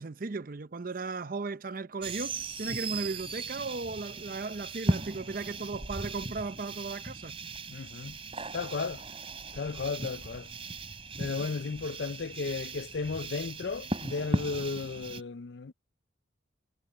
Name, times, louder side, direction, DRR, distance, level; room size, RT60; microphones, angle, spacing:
voice 1, 0.0-7.3, right 3 dB, 45° right, 0.6 m, -36 dB
sound 1, 2.0-15.2, right 2 dB, 30° right, 3.2 m, -37 dB
voice 2, 7.7-8.2 8.5-9.1 9.5-10.5 11.2-15.7, left 4 dB, 60° left, 0.5 m, -34 dB
head